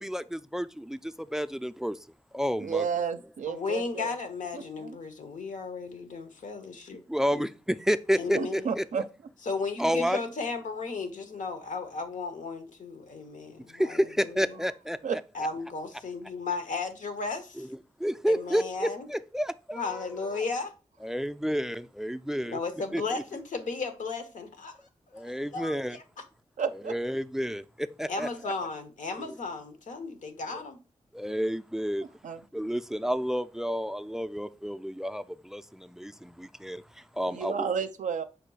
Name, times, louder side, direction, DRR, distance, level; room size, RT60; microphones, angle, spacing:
voice 1, 0.0-1.0 1.3-1.9 2.3-2.8 7.1-7.5 7.9-8.8 9.8-10.2 14.2-15.2 17.6-17.7 18.0-20.4 21.0-22.6 22.9-23.0 25.2-26.0 26.7-27.6 28.0-28.5 30.5-30.6 31.2-32.0 32.5-35.2 35.5-35.6 36.0-36.1 36.6-36.8 37.2-37.7, equal, 5° right, 0.3 m, -30 dB
voice 2, 2.6-4.1 4.5-5.0 8.3-9.0 15.0-15.2 26.6-26.9 32.2-32.4 37.3-38.2, right 6 dB, 75° right, 0.4 m, -31 dB
voice 3, 3.5-7.0 7.3-7.5 8.2-8.7 9.4-14.6 15.3-17.7 18.3-19.1 19.7-20.7 22.4-24.8 25.1-26.0 28.1-30.8, left 4 dB, 75° left, 0.7 m, -35 dB
4.9 x 2.2 x 4.6 m
cardioid pair, 40°, 13 cm